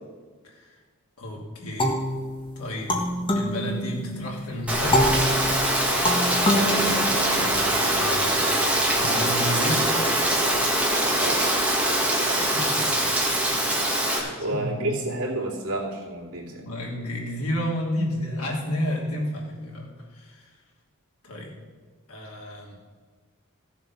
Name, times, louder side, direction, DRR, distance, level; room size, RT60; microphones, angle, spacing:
voice 1, 0.4-0.8 1.2-2.0 2.6-2.9 3.3-5.1 7.8-8.4 9.0-9.9 12.3-13.1 14.1-14.9 16.6-20.5 21.2-21.5 22.1-22.8, left 1 dB, 80° left, -1 dB, 3.0 m, -31 dB
sound 1, 1.8-4.3 4.9-7.7, left 1 dB, 25° left, 1.4 m, -26 dB
Rain, 4.7-14.2, right 1 dB, 5° right, 1.9 m, -23 dB
voice 2, 6.5-7.1 11.2-11.4 14.4-16.7, right 1 dB, 85° right, -1 dB, 2.9 m, -30 dB
15.0 x 7.3 x 6.1 m, 1.5 s
head